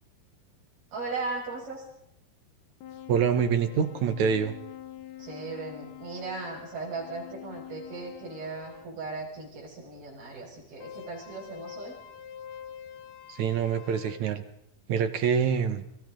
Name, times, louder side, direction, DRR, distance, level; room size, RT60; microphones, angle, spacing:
voice 1, 0.9-1.9 5.2-12.0, right 3 dB, 80° right, -5 dB, 8.2 m, -37 dB
sound 1, 2.8-8.9 10.8-14.2, left 10 dB, 85° left, 3.6 m, -45 dB
voice 2, 3.1-4.5 13.3-14.4 14.9-15.8, right 7 dB, 60° right, 10 dB, 2.3 m, -25 dB
30.0 x 25.0 x 3.9 m, 0.77 s
omnidirectional pair, 4.4 m